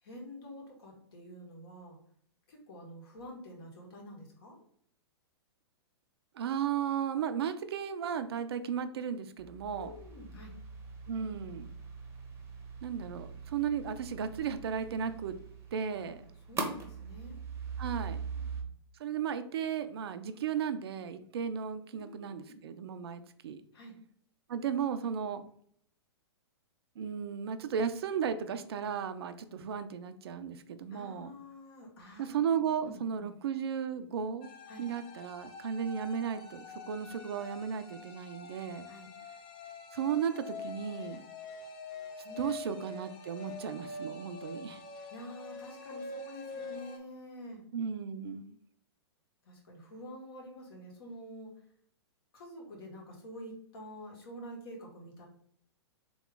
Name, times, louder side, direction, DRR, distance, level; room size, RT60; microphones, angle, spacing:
voice 1, 0.0-2.0 2.5-4.6 9.8-10.5 16.5-17.4 18.3-18.7 21.9-22.6 23.7-23.9 30.9-33.3 34.7-34.8 38.8-39.1 42.2-42.9 45.1-47.6 49.4-51.5 52.3-55.3, equal, 60° left, 0 dB, 1.6 m, -48 dB
voice 2, 6.4-9.9 11.1-11.7 12.8-15.4 15.7-16.2 17.8-18.2 19.0-23.6 24.5-25.4 27.0-31.3 32.2-34.5 34.8-38.9 39.9-41.2 42.4-44.8 47.7-48.6, right 7 dB, 65° right, 10 dB, 0.5 m, -35 dB
sound 1, 9.4-18.6, right 5 dB, 20° right, 0.8 m, -42 dB
sound 2, 34.4-47.0, left 3 dB, 30° left, 0.6 m, -45 dB
3.6 x 3.0 x 3.5 m, 0.65 s
hypercardioid pair, 115°, 14 cm